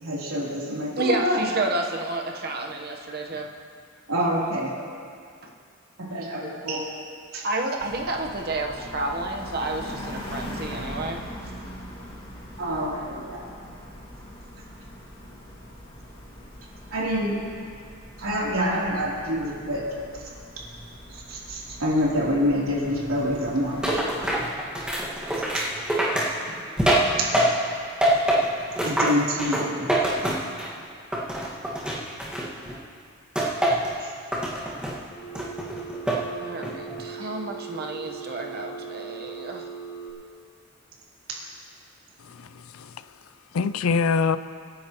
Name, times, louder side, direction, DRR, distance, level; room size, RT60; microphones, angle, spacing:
voice 1, 0.0-1.4 4.1-4.7 6.0-6.8 7.3-7.4 12.6-13.4 16.9-17.4 18.2-19.8 20.2-20.3 21.1-24.0 26.7-26.8 28.8-30.1 34.0-34.1 37.2-37.3, equal, 90° right, -5 dB, 3.3 m, -27 dB
voice 2, 1.0-3.5 5.4-5.5 7.4-11.2 36.4-39.6, right 2 dB, 45° right, 2 dB, 1.1 m, -30 dB
sound 1, 7.8-24.5, equal, 25° left, 2.1 m, -41 dB
sound 2, 23.8-27.7 28.0-30.8 31.1-32.7 33.3-33.9 34.3-35.0 35.3-36.2 36.6-37.0, right 1 dB, 5° right, 1.8 m, -25 dB
Telephone, 35.1-40.1, right 6 dB, 40° left, 2.4 m, -39 dB
voice 3, 42.2-43.0 43.5-44.4, left 5 dB, 80° left, 14 dB, 0.5 m, -25 dB
26.0 x 10.5 x 3.1 m, 2.2 s
head